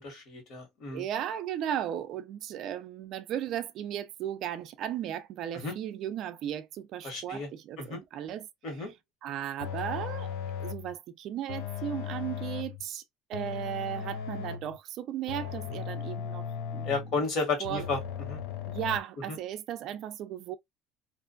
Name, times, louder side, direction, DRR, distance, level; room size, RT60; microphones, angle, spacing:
voice 1, 0.0-1.0 5.5-5.7 7.0-7.5 7.8-8.0 8.6-8.9 16.8-18.4 19.3-19.4, left 4 dB, 55° left, 1.4 m, -33 dB
voice 2, 0.9-8.5 9.2-10.3 10.6-13.0 13.3-17.0 17.6-17.9 18.7-20.6, right 10 dB, 50° right, 0.3 m, -36 dB
sound 1, 9.6-10.9 11.5-12.8 13.3-14.8 15.3-17.2 17.6-19.0, left 8 dB, 85° left, 0.5 m, -37 dB
2.5 x 2.2 x 2.5 m
cardioid pair, 145°, 0 cm